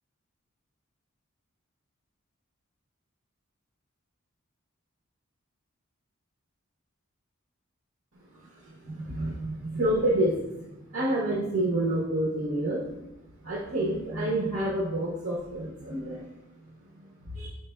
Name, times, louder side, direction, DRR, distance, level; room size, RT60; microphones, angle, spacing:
voice 1, 8.3-12.9 13.4-16.3 17.0-17.5, right 1 dB, 70° right, -5 dB, 0.7 m, -29 dB
4.4 x 3.2 x 2.2 m, 0.91 s
head